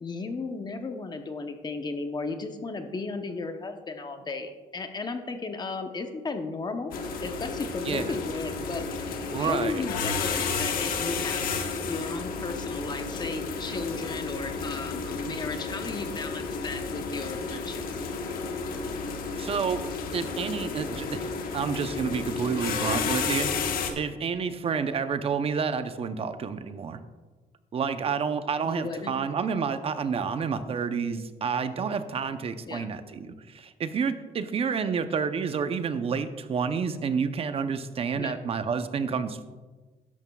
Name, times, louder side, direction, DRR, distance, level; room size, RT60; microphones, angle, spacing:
voice 1, 0.0-6.9 7.2-17.8 28.6-29.2 32.7-32.9 38.2-38.4, left 3 dB, 30° left, 6 dB, 0.8 m, -35 dB
sound 1, 6.9-23.9, left 5 dB, 75° left, 1.2 m, -32 dB
voice 2, 9.3-9.8 19.4-19.8 20.1-21.3 21.5-23.5 24.0-27.0 27.7-39.4, right 6 dB, 40° right, 10 dB, 0.6 m, -29 dB
13.0 x 10.5 x 2.3 m, 1.3 s
cardioid pair, 125°, 15 cm